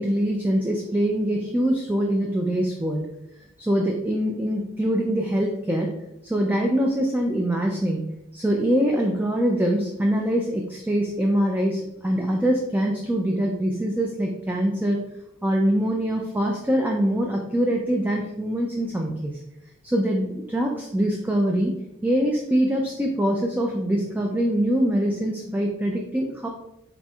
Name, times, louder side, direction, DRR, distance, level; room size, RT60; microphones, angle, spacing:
voice 1, 0.0-3.0 3.6-5.9 6.2-8.0 8.3-15.0 15.4-19.4 19.8-21.7 22.0-26.5, equal, 10° right, 0 dB, 0.3 m, -23 dB
4.3 x 4.1 x 2.3 m, 0.84 s
head